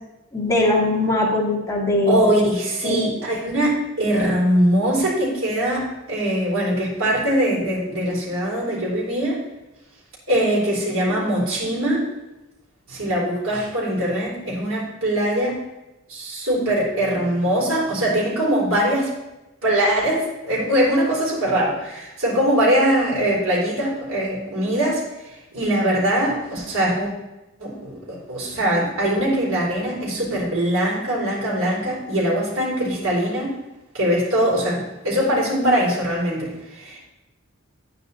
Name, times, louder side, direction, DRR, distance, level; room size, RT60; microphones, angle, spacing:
voice 1, 0.3-2.2 2.8-3.0, left 2 dB, 15° left, -2 dB, 2.1 m, -20 dB
voice 2, 2.0-9.4 10.3-12.1 12.9-15.6 16.1-19.1 19.6-25.0 25.5-27.1 27.6-33.5 33.9-37.0, right 1 dB, 75° right, -5 dB, 4.3 m, -22 dB
9.8 x 9.4 x 4.3 m, 0.99 s
head